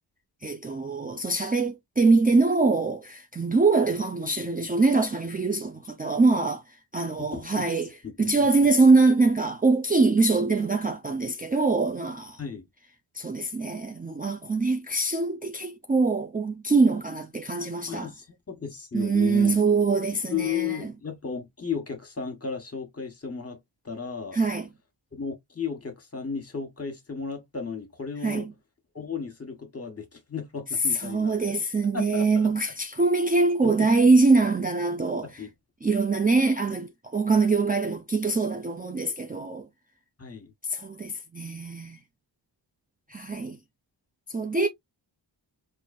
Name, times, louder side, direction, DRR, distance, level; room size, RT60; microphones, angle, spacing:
voice 1, 0.4-6.6 6.9-7.9 8.2-12.4 13.1-18.1 18.9-20.9 24.3-24.7 28.2-28.5 30.9-35.4 35.8-39.7 40.6-42.0 43.1-43.6 44.3-44.7, right 3 dB, 20° right, 0.4 m, -23 dB
voice 2, 7.2-7.7 8.0-8.5 12.4-12.6 17.9-19.6 20.3-23.6 23.8-24.4 25.1-28.5 28.9-31.6 31.9-32.5 33.6-33.9 35.2-35.5 40.2-40.5, left 6 dB, 35° left, 1.3 m, -34 dB
3.8 x 2.6 x 2.5 m
cardioid pair, 60°, 44 cm